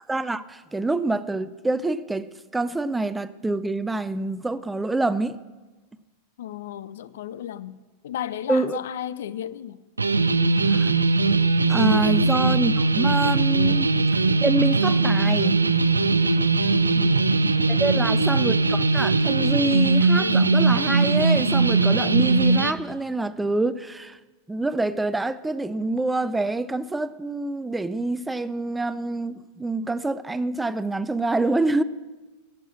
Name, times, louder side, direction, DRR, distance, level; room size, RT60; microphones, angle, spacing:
voice 1, 0.1-2.3 2.5-5.4 8.5-8.8 10.7-10.9 11.7-13.9 14.4-15.6 17.7-24.2 24.5-31.8, right 2 dB, 10° right, 0.4 m, -26 dB
voice 2, 6.4-7.8 8.0-9.8 12.1-12.3 13.7-13.9 16.9-17.3 17.9-18.3, left 10 dB, 60° left, 0.4 m, -35 dB
sound 1, 10.0-22.7, right 3 dB, 80° right, 0.4 m, -20 dB
11.5 x 7.4 x 7.5 m
figure-of-eight pair, 90°, 0 cm